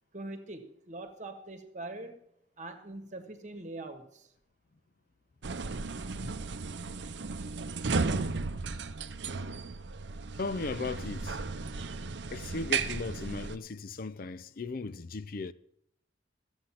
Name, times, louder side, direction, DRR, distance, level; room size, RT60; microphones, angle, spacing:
voice 1, 0.1-2.2 2.6-4.3, right 2 dB, 40° right, 1.4 m, -43 dB
sound 1, 5.4-13.6, right 4 dB, 70° right, 0.6 m, -35 dB
voice 2, 7.9-8.5 10.4-11.4 12.3-15.5, left 3 dB, 50° left, 0.5 m, -37 dB
13.5 x 8.0 x 5.8 m
head